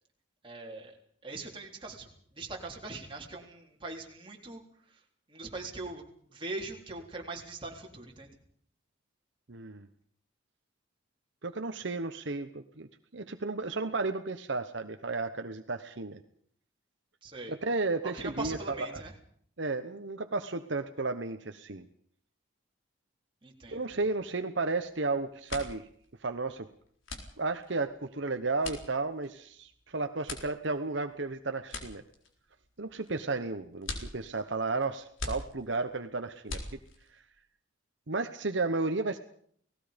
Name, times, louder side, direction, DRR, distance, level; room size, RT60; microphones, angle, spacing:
voice 1, 0.4-1.0 1.2-4.6 4.9-5.0 5.3-6.0 6.3-8.3 17.2-17.5 18.0-19.1 23.4-23.8, right 2 dB, 25° right, 0 dB, 3.7 m, -41 dB
voice 2, 9.5-9.9 11.4-16.2 17.5-19.0 19.6-21.9 23.7-25.9 26.2-26.7 27.4-32.0 32.8-36.6 38.1-39.2, right 3 dB, 65° right, 7 dB, 1.1 m, -33 dB
sound 1, 24.8-25.0 25.3-37.2, left 2 dB, 85° left, 4.1 m, -43 dB
30.0 x 18.5 x 5.2 m, 0.62 s
head